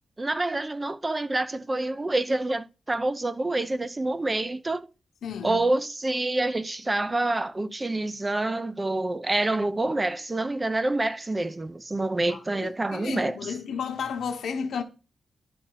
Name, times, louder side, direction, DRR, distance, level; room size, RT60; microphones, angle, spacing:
voice 1, 0.2-4.9 5.4-13.5, right 2 dB, 20° right, 0.4 m, -27 dB
voice 2, 5.2-5.6 12.3-14.8, left 6 dB, 85° left, 1.0 m, -33 dB
11.0 x 4.1 x 3.8 m
wide cardioid pair, 150°, 0 cm